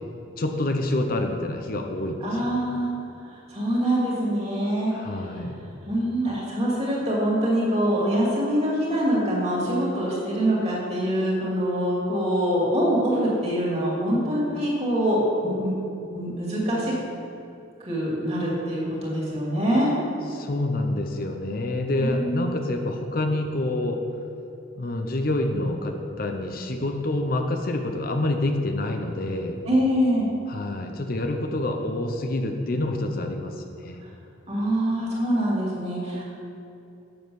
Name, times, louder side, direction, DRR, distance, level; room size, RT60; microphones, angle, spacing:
voice 1, 0.4-2.5 4.9-5.6 20.3-24.0 24.8-29.6 30.5-34.0, left 1 dB, 45° left, 4 dB, 0.6 m, -27 dB
voice 2, 2.2-2.9 3.5-4.9 5.9-15.7 16.0-16.9 17.8-19.9 22.0-22.5 29.6-30.3 34.5-36.3, equal, 30° right, -5 dB, 2.5 m, -24 dB
7.8 x 7.1 x 6.3 m, 2.8 s
head